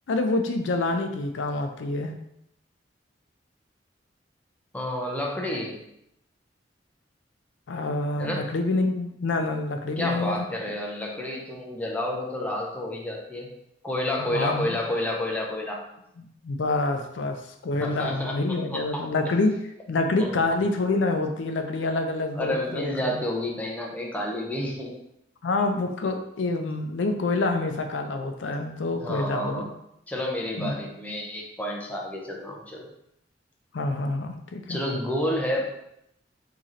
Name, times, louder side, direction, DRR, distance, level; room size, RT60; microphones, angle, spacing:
voice 1, 0.1-2.1 7.7-10.5 14.3-14.8 16.2-19.5 19.9-23.2 25.4-29.6 30.6-30.8 33.7-34.8, left 2 dB, 90° left, 5 dB, 0.4 m, -27 dB
voice 2, 4.7-5.8 8.2-8.5 10.0-13.5 13.8-15.8 17.7-19.0 20.2-20.4 22.4-24.9 29.0-29.7 30.1-32.9 34.7-35.7, left 1 dB, 10° left, -1 dB, 0.6 m, -30 dB
3.0 x 2.8 x 3.7 m, 0.79 s
head